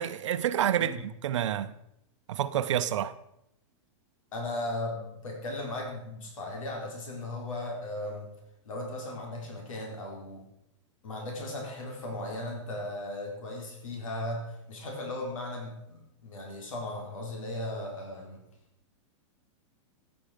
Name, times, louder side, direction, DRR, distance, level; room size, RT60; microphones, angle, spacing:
voice 1, 0.0-1.7 2.3-3.1, right 10 dB, 65° right, 0.8 m, -28 dB
voice 2, 4.3-8.3 8.6-10.4 11.0-18.4, left 1 dB, 85° left, 4.2 m, -37 dB
15.5 x 9.7 x 5.1 m
supercardioid pair, 170°, 17 cm